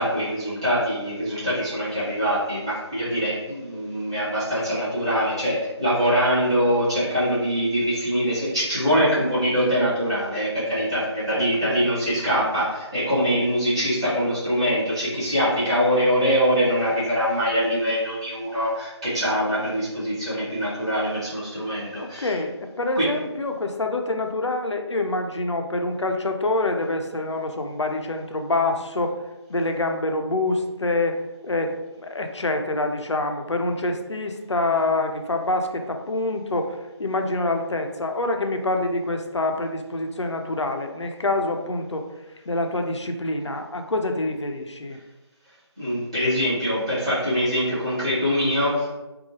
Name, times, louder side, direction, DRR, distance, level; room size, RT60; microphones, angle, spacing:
voice 1, 0.0-22.3 23.0-23.1 45.8-49.0, equal, 10° right, -13 dB, 0.5 m, -23 dB
voice 2, 11.3-11.9 22.0-29.2 29.5-45.0, left 2 dB, 75° left, 5 dB, 0.4 m, -26 dB
2.7 x 2.3 x 2.7 m, 1.1 s
figure-of-eight pair, 160°, 15 cm